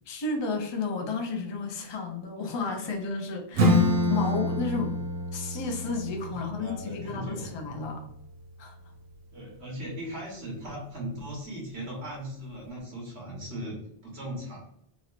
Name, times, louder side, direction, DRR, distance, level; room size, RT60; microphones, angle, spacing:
voice 1, 0.1-5.0 5.3-8.0 8.6-8.8, left 4 dB, 40° left, 3 dB, 0.4 m, -32 dB
Acoustic guitar / Strum, 3.6-8.8, left 1 dB, 70° right, 0.8 m, -28 dB
voice 2, 6.3-7.5 9.3-13.8 14.0-14.6, equal, 85° right, -4 dB, 1.4 m, -38 dB
3.1 x 3.0 x 2.4 m, 0.72 s
omnidirectional pair, 1.1 m